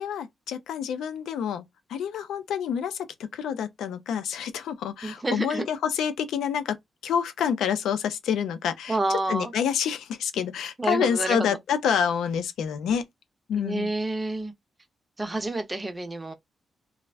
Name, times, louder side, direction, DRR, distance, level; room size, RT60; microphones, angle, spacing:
voice 1, 0.0-13.1 13.5-13.9, left 8 dB, 90° left, 0.4 m, -28 dB
voice 2, 5.0-5.6 8.9-9.5 10.8-11.5 13.5-14.5 15.2-16.3, right 2 dB, 20° right, 0.7 m, -28 dB
2.4 x 2.0 x 3.3 m
cardioid pair, 95°, 0 cm